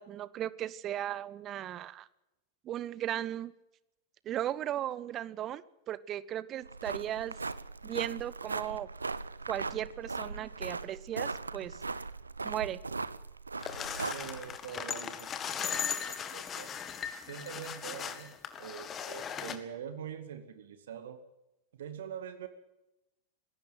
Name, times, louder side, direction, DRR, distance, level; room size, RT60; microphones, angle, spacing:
voice 1, 0.0-2.1 2.6-3.5 4.3-7.4 7.8-8.9 9.5-11.8 12.4-12.8, right 12 dB, 30° right, 19 dB, 0.9 m, -36 dB
sound 1, 6.6-14.6, right 3 dB, 80° right, 0.8 m, -39 dB
sound 2, 13.6-19.6, left 8 dB, 25° left, 1.9 m, -38 dB
voice 2, 14.0-15.3 15.6-16.7 17.3-21.2 21.8-22.5, right 8 dB, 60° right, 9 dB, 2.0 m, -44 dB
20.5 x 17.0 x 7.8 m, 0.93 s
figure-of-eight pair, 90°, 0 cm